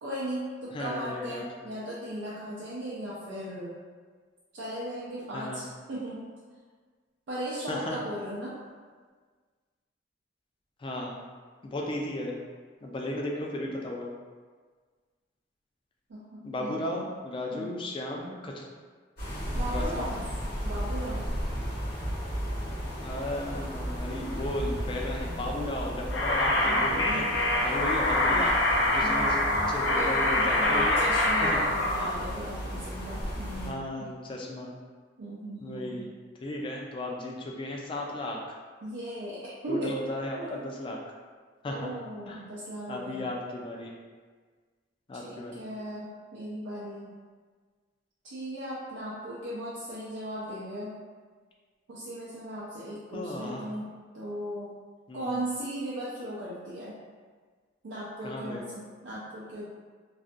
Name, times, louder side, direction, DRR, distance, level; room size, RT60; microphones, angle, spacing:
voice 1, 0.0-3.7 4.5-6.3 7.3-8.6 16.1-17.1 17.5-17.7 19.5-20.2 20.6-21.3 26.6-27.3 28.1-34.1 35.2-36.1 38.8-40.1 40.4-40.7 41.7-43.3 45.1-47.1 48.2-51.0 51.9-54.7 55.1-57.0 57.8-59.7, right 1 dB, 80° right, -8 dB, 0.4 m, -37 dB
voice 2, 0.7-1.5 5.3-5.6 7.7-8.0 10.8-11.2 11.6-12.4 12.8-14.1 16.4-18.6 19.7-20.1 23.0-28.5 28.9-29.4 29.7-31.0 31.5-31.6 32.0-32.1 33.7-34.8 35.6-36.1 36.4-38.4 39.7-41.0 41.6-41.9 42.3-42.4 42.9-43.9 45.1-45.6 53.1-53.7 55.1-55.3 58.2-58.6, left 1 dB, 30° left, -1 dB, 0.3 m, -35 dB
sound 1, 19.2-33.7, equal, 55° left, 0.9 m, -35 dB
sound 2, 26.1-32.0, left 1 dB, 85° left, 0.5 m, -25 dB
2.4 x 2.2 x 2.5 m, 1.5 s
head